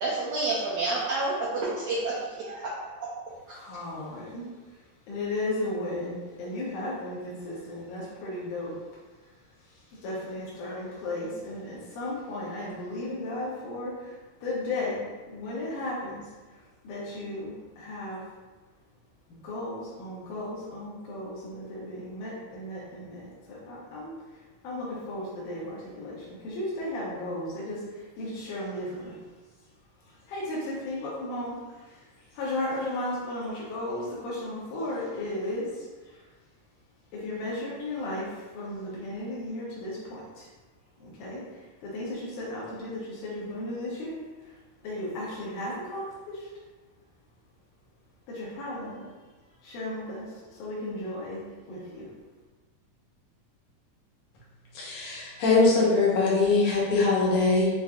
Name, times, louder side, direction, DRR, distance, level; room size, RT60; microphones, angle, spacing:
voice 1, 0.0-3.2 3.5-3.6, right 2 dB, 70° right, -7 dB, 1.7 m, -30 dB
voice 2, 3.5-8.8 9.2-9.3 9.6-18.3 19.3-29.2 30.0-36.3 37.1-40.5 41.0-44.6 44.8-46.5 48.3-49.0 49.6-52.1, left 1 dB, 80° left, -7 dB, 2.5 m, -35 dB
voice 3, 54.7-57.7, left 3 dB, 65° left, -5 dB, 1.5 m, -22 dB
6.8 x 2.5 x 2.4 m, 1.3 s
omnidirectional pair, 3.5 m